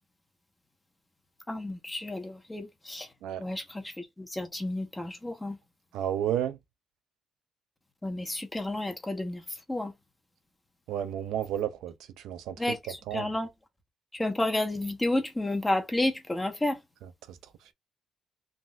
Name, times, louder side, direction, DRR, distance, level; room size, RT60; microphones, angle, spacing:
voice 1, 1.5-3.1 3.4-5.6 8.0-9.4 9.7-9.9 12.6-13.5 14.1-16.8, left 1 dB, 15° left, 1.1 m, -31 dB
voice 2, 5.9-6.6 10.9-12.8 13.1-13.3 17.3-17.4, right 10 dB, 90° right, 0.5 m, -32 dB
3.6 x 2.5 x 2.3 m
cardioid pair, 90°, 0 cm